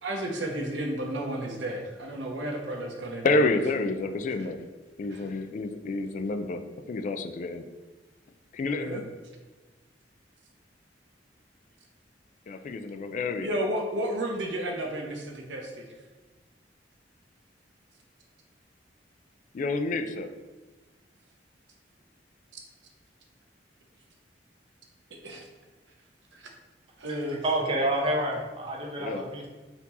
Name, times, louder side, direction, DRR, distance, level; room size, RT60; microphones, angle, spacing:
voice 1, 0.0-3.3 5.1-5.2 8.7-9.0 13.4-15.8 25.1-25.4 26.3-26.5 27.0-27.4, right 1 dB, 80° right, 1 dB, 0.8 m, -32 dB
voice 2, 3.2-4.6 5.0-6.6 6.9-7.6 8.5-9.0 12.5-13.6 19.5-20.3 29.0-29.2, left 3 dB, 45° left, 8 dB, 0.3 m, -29 dB
voice 3, 27.4-29.5, right 1 dB, 30° right, -1 dB, 0.8 m, -28 dB
4.3 x 2.8 x 4.1 m, 1.3 s
head